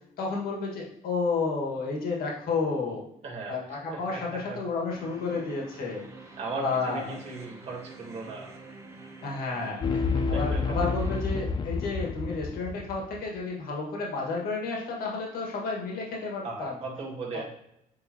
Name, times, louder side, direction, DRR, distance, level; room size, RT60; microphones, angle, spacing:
voice 1, 0.2-3.1 3.5-6.1 6.6-7.2 9.2-9.8 10.3-16.8 17.3-17.4, left 4 dB, 80° left, -1 dB, 1.9 m, -31 dB
voice 2, 3.2-4.6 6.4-8.5 9.9-10.8 16.4-17.4, right 3 dB, 45° right, -4 dB, 2.2 m, -38 dB
sound 1, 4.9-11.2, right 3 dB, 20° right, 0.9 m, -47 dB
sound 2, 9.8-13.2, left 4 dB, 30° left, 0.5 m, -29 dB
8.9 x 3.7 x 3.0 m, 0.78 s
cardioid pair, 130°, 15 cm